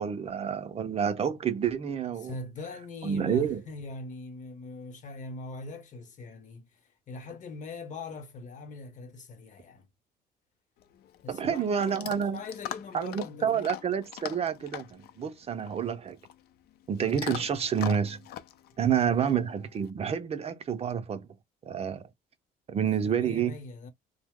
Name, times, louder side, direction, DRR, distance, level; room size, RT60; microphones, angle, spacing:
voice 1, 0.0-2.4 3.0-3.6 11.3-12.4 12.9-16.2 16.9-18.2 18.8-21.3 21.6-22.0 22.7-23.5, right 8 dB, 35° right, 0.5 m, -29 dB
voice 2, 2.2-6.6 7.1-9.8 11.2-13.8 23.0-23.9, left 3 dB, 45° left, 0.8 m, -42 dB
Chewing mastication / Dog, 10.8-19.9, left 11 dB, 70° left, 0.5 m, -43 dB
2.8 x 2.0 x 3.5 m
cardioid pair, 110°, 17 cm